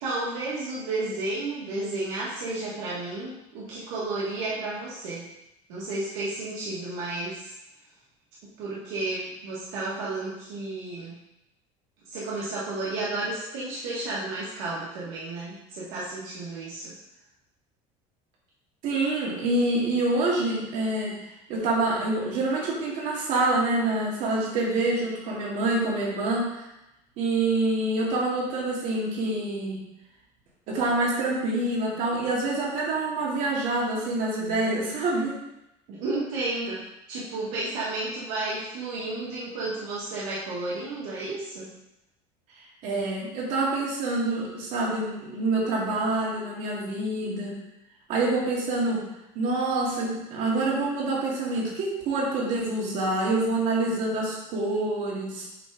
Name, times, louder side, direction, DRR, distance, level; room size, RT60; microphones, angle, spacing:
voice 1, 0.0-5.2 5.7-7.5 8.6-11.1 12.1-16.9 35.9-36.8 37.1-41.7, right 2 dB, 80° right, -7 dB, 1.8 m, -32 dB
voice 2, 18.8-26.7 27.2-29.8 30.7-35.4 42.8-47.6 48.1-49.1 49.3-55.5, right 2 dB, 60° right, -4 dB, 2.5 m, -26 dB
8.2 x 3.7 x 4.8 m, 0.89 s
cardioid pair, 150°, 15 cm